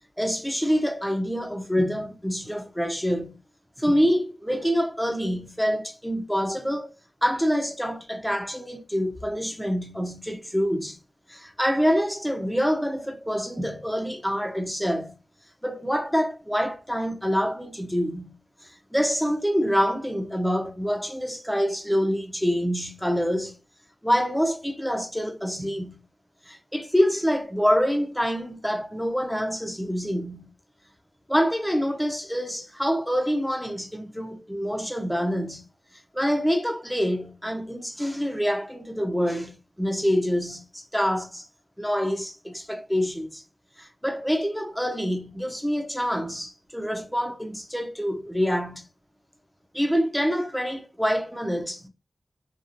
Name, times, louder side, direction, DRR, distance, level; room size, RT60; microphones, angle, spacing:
voice 1, 0.2-3.4 3.8-6.9 7.2-11.0 11.3-15.2 15.6-23.6 24.0-26.0 26.5-30.5 31.3-35.6 36.1-41.5 41.8-43.4 43.8-48.8 49.7-51.9, equal, ahead, 0.6 m, -26 dB
2.9 x 2.4 x 2.5 m
cardioid pair, 40°, 0 cm